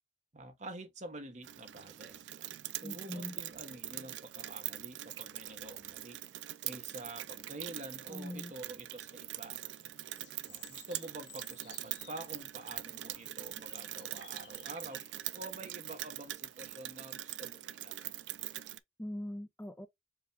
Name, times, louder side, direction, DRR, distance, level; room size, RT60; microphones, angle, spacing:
voice 1, 0.3-2.2 2.8-6.2 6.6-9.6 10.5-15.0 15.3-18.0, right 2 dB, 40° right, 1.0 m, -47 dB
Rain, 1.4-18.8, right 14 dB, 75° right, 0.3 m, -43 dB
voice 2, 2.8-3.4 8.1-8.5 19.0-19.9, left 1 dB, 10° left, 0.5 m, -42 dB
sound 1, 7.0-16.3, left 7 dB, 85° left, 1.5 m, -62 dB
4.8 x 2.4 x 3.3 m
head